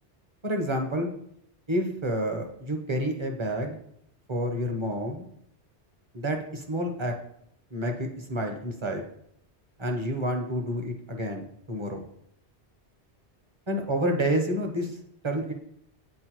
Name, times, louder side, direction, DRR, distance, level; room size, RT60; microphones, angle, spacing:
voice 1, 0.4-1.1 1.7-3.8 4.3-5.3 6.1-7.2 7.7-9.0 9.8-12.0 13.7-15.0 15.2-15.5, equal, 30° right, 3 dB, 0.7 m, -29 dB
8.6 x 4.3 x 3.0 m, 0.72 s
omnidirectional pair, 1.1 m